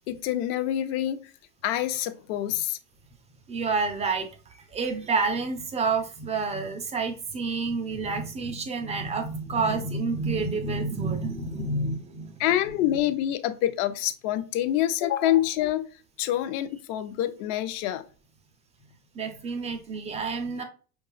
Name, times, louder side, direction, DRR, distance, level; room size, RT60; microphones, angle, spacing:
voice 1, 0.1-1.2 1.6-2.8 12.4-15.9 16.2-18.0, left 12 dB, 55° left, 11 dB, 0.5 m, -26 dB
voice 2, 3.5-4.3 4.7-12.4 12.9-13.0 19.1-20.6, right 4 dB, 15° right, 6 dB, 0.3 m, -29 dB
4.7 x 2.3 x 2.3 m, 0.39 s
hypercardioid pair, 85°, 46 cm